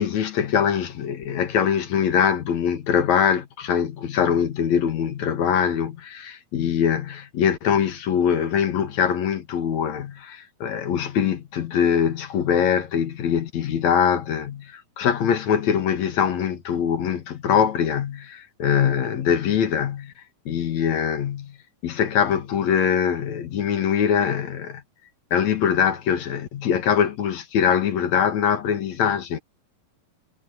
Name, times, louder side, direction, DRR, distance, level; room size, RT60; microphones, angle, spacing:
voice 1, 0.0-20.1 20.5-21.6 21.8-24.8 25.3-29.4, left 8 dB, 55° left, 2.7 m, -23 dB
omnidirectional pair, 4.2 m